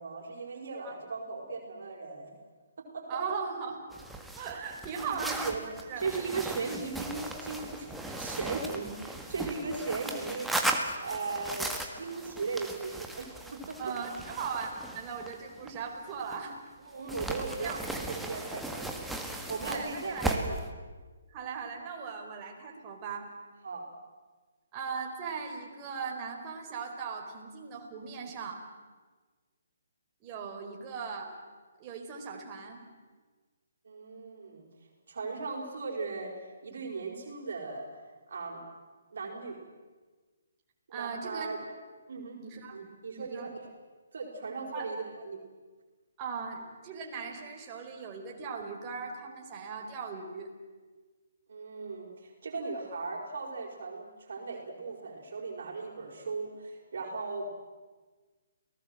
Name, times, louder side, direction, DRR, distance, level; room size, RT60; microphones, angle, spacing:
voice 1, 0.0-2.3 2.8-3.1 5.0-5.6 6.0-11.7 12.0-13.8 16.8-18.9 19.5-20.6 23.6-23.9 33.8-34.7 35.1-36.3 36.6-37.9 38.3-38.6 39.1-39.6 40.9-41.6 42.1-42.4 42.7-43.6 44.1-45.4 51.5-57.5, right 4 dB, 60° right, 1 dB, 4.9 m, -37 dB
voice 2, 3.1-3.8 4.4-6.1 13.8-16.6 17.6-18.0 19.7-20.6 21.3-23.3 24.7-28.6 30.2-31.4 31.8-32.8 40.9-41.5 42.4-42.8 43.2-43.5 44.7-44.9 46.2-50.5, right 5 dB, 25° right, 1 dB, 4.6 m, -39 dB
sound 1, 3.9-16.6 17.1-20.7, right 1 dB, 5° right, 1.9 m, -37 dB
29.0 x 18.5 x 7.7 m, 1.4 s
figure-of-eight pair, 140°, 0 cm